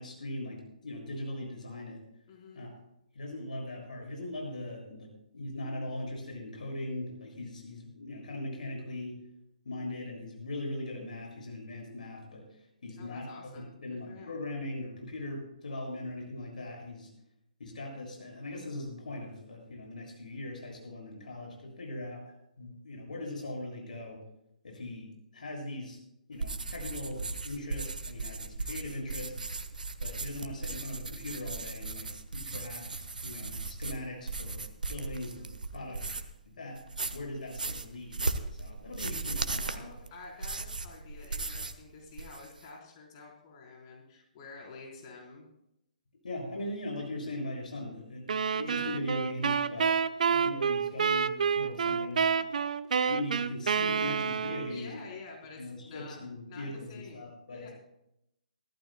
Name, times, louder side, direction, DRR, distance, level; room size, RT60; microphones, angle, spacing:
voice 1, 0.0-2.0 2.5-2.7 3.1-9.1 9.6-13.3 13.5-17.1 17.6-24.2 24.6-26.0 26.3-29.5 30.0-34.6 34.9-36.1 36.6-36.8 37.1-38.3 38.6-39.8 46.2-49.9 50.3-52.4 53.0-54.9 55.6-57.7, left 1 dB, 70° left, -1 dB, 6.8 m, -40 dB
voice 2, 2.3-2.8 13.0-13.8 14.1-14.4 35.7-36.2 39.6-45.5 54.6-56.2 56.5-57.7, left 4 dB, 40° left, -2 dB, 4.0 m, -49 dB
sound 1, 26.3-36.4 36.8-41.8 42.1-42.6, right 3 dB, 80° right, 1.1 m, -37 dB
sound 2, 48.3-54.9, right 6 dB, 65° right, 0.6 m, -28 dB
23.0 x 14.5 x 2.2 m, 0.80 s
figure-of-eight pair, 130°, 4 cm